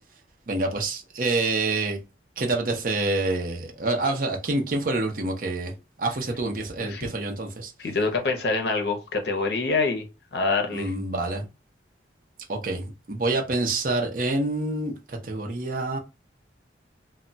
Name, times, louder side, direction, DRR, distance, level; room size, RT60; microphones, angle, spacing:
voice 1, 0.5-2.0 2.4-5.7 6.0-7.7 10.7-11.5 12.5-16.0, right 2 dB, 50° right, 0.6 m, -27 dB
voice 2, 6.8-7.1 7.8-10.9, left 3 dB, 65° left, 0.6 m, -26 dB
2.2 x 2.1 x 3.8 m
head